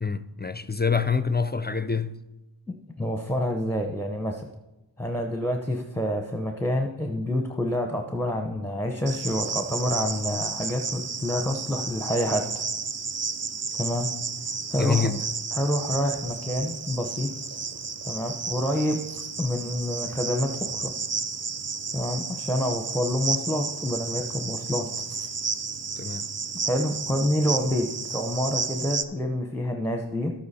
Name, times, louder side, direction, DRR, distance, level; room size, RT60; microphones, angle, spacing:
voice 1, 0.0-2.2 14.8-15.2 26.0-26.3, left 5 dB, 25° left, 0.4 m, -26 dB
voice 2, 3.0-4.4 5.0-12.6 13.7-14.1 14.7-15.1 15.5-17.6 18.0-20.9 21.9-25.3 26.6-30.3, left 1 dB, 5° left, 0.8 m, -28 dB
Cricket, 9.1-29.0, right 5 dB, 35° right, 0.5 m, -32 dB
12.0 x 8.5 x 4.2 m
wide cardioid pair, 50°, 47 cm